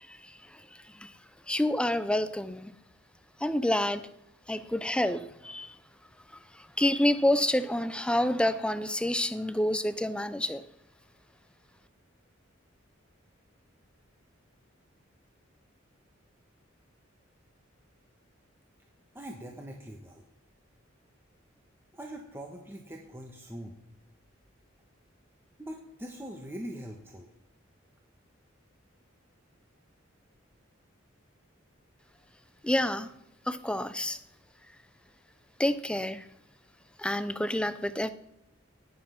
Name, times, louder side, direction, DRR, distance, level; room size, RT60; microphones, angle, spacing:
voice 1, 0.1-0.6 1.0-1.1 1.5-2.7 3.4-4.0 4.5-5.8 6.6-10.6 32.6-33.1 33.5-34.2 35.6-36.3 37.0-38.1, left 1 dB, 5° left, 13 dB, 0.6 m, -28 dB
voice 2, 19.1-20.2 21.9-23.8 25.6-27.3, equal, 10° right, 1 dB, 1.3 m, -42 dB
19.0 x 7.6 x 5.9 m, 0.86 s
head